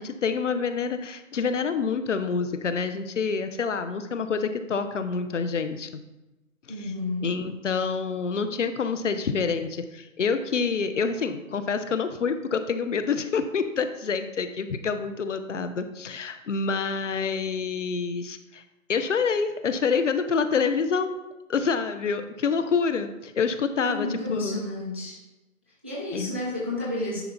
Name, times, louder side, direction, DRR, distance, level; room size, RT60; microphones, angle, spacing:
voice 1, 0.0-6.0 6.8-6.9 7.2-18.6 18.9-21.1 21.5-24.6 26.1-26.4, left 5 dB, 60° left, 9 dB, 0.9 m, -27 dB
voice 2, 6.7-7.3 23.8-25.2 25.8-27.2, left 1 dB, 10° right, -7 dB, 0.5 m, -31 dB
10.0 x 4.7 x 4.0 m, 1.0 s
hypercardioid pair, 155°, 42 cm